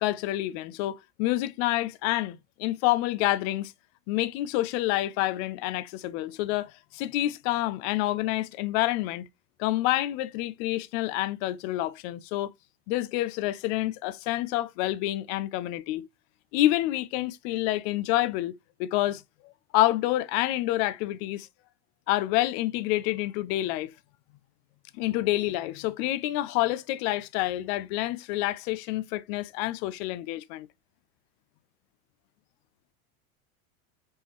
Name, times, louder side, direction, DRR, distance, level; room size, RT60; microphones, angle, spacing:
voice 1, 0.0-3.7 4.1-9.3 9.6-12.5 12.9-16.1 16.5-18.5 18.8-21.5 22.1-23.9 25.0-30.7, left 16 dB, 50° left, 0.5 m, -28 dB
4.3 x 3.6 x 2.9 m
supercardioid pair, 130°, 43 cm